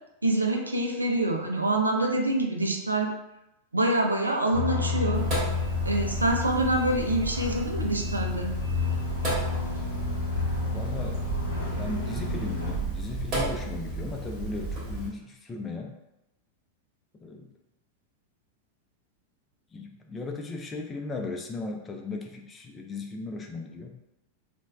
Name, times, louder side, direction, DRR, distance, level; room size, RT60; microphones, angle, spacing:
voice 1, 0.2-3.1 3.7-5.2 5.8-8.5, right 1 dB, 80° right, 2 dB, 0.4 m, -26 dB
sound 1, 4.5-12.8, left 4 dB, 80° left, 0.6 m, -30 dB
Sink (filling or washing), 5.1-15.1, right 3 dB, 35° right, 1.2 m, -34 dB
voice 2, 10.7-11.3 11.8-16.0 17.2-17.5 19.7-23.9, left 3 dB, 20° left, 2 dB, 0.4 m, -36 dB
3.0 x 2.1 x 2.3 m, 0.87 s
figure-of-eight pair, 90°, 0 cm